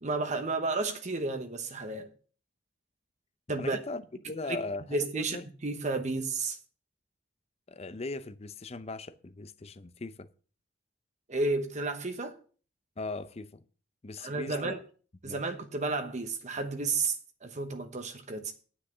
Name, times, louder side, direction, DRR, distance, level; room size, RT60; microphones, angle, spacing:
voice 1, 0.0-2.1 3.5-3.8 4.5-4.6 4.9-5.4 5.6-6.6 11.3-12.4 14.2-14.8 15.2-17.2 17.4-18.5, right 3 dB, 40° right, 1.0 m, -32 dB
voice 2, 3.6-5.4 7.7-10.3 13.0-13.6 14.0-14.8 15.2-15.4, left 3 dB, 35° left, 0.6 m, -39 dB
10.0 x 6.4 x 6.7 m
head